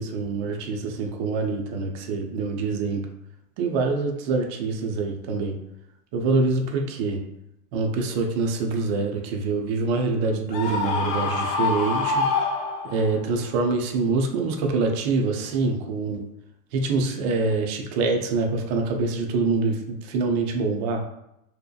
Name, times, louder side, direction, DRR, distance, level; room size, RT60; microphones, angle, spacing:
voice 1, 0.0-3.1 3.6-5.6 6.1-7.2 7.7-12.3 12.8-16.2 16.7-21.0, right 3 dB, 45° right, 3 dB, 0.5 m, -25 dB
Screaming, 10.5-13.2, left 4 dB, 80° left, 0.7 m, -25 dB
2.8 x 2.1 x 2.2 m, 0.82 s
hypercardioid pair, 120°, 47 cm